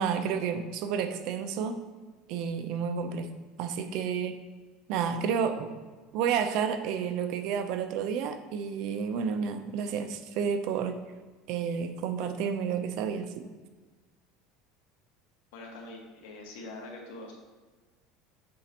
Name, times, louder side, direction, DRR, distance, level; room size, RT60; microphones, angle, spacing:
voice 1, 0.0-1.8 2.3-3.3 3.6-4.4 4.9-5.7 6.1-11.0 11.5-13.5, right 7 dB, 60° right, 8 dB, 0.6 m, -30 dB
voice 2, 15.5-17.3, left 2 dB, 90° left, 0 dB, 1.5 m, -44 dB
7.6 x 5.0 x 2.9 m, 1.3 s
cardioid pair, 145°, 0 cm